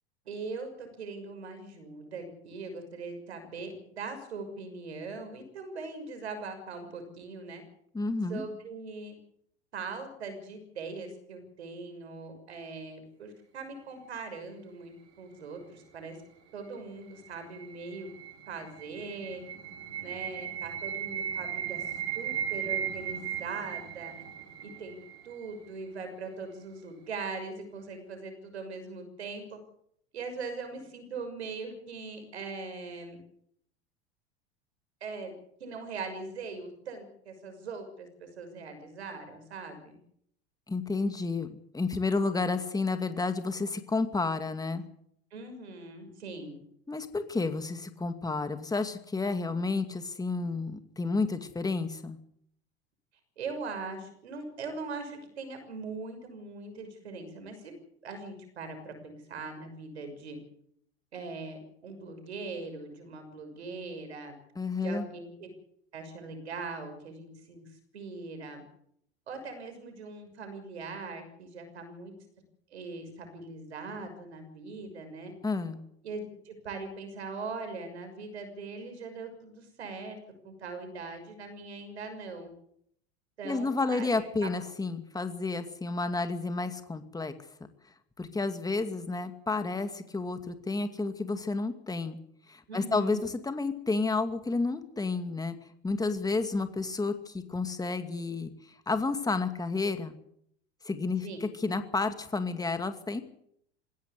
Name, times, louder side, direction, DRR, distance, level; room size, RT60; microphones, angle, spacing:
voice 1, 0.3-7.6 8.3-9.1 9.7-16.2 16.5-18.1 18.5-19.4 20.0-24.1 24.6-25.0 25.2-29.6 30.1-33.2 35.0-35.3 35.6-40.0 45.3-46.6 53.4-57.7 58.0-60.4 61.1-64.4 64.8-65.5 65.9-67.7 67.9-68.6 69.3-72.1 72.7-75.3 76.0-80.2 80.4-82.5 83.4-84.5 92.7-93.3 101.2-101.4, right 4 dB, 85° right, 7 dB, 6.4 m, -41 dB
voice 2, 7.9-8.5 40.7-44.8 46.9-52.2 64.6-65.1 75.4-75.8 83.4-87.3 88.2-92.2 92.5-95.6 95.8-98.5 98.9-100.2 100.8-103.2, left 3 dB, 10° left, 8 dB, 2.3 m, -31 dB
sound 1, 16.8-25.8, right 9 dB, 50° right, 4.1 m, -37 dB
20.5 x 17.0 x 8.2 m, 0.71 s
hypercardioid pair, 90°, 32 cm